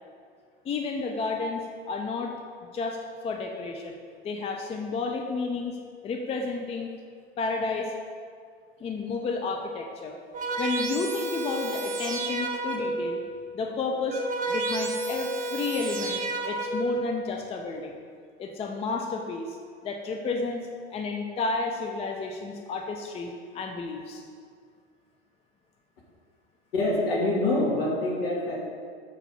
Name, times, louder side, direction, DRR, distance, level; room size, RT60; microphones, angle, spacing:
voice 1, 0.6-2.3 2.7-4.0 4.2-5.8 6.0-6.9 7.4-7.9 8.8-10.2 10.6-13.2 13.5-14.2 14.5-18.0 18.4-19.6 19.8-24.2, left 4 dB, 20° left, 3 dB, 0.5 m, -31 dB
sound 1, 10.3-13.1 13.8-17.0, right 2 dB, 25° right, 1.0 m, -31 dB
voice 2, 26.7-28.6, left 2 dB, 65° left, -2 dB, 1.9 m, -25 dB
6.7 x 4.7 x 5.3 m, 2.1 s
figure-of-eight pair, 85°, 33 cm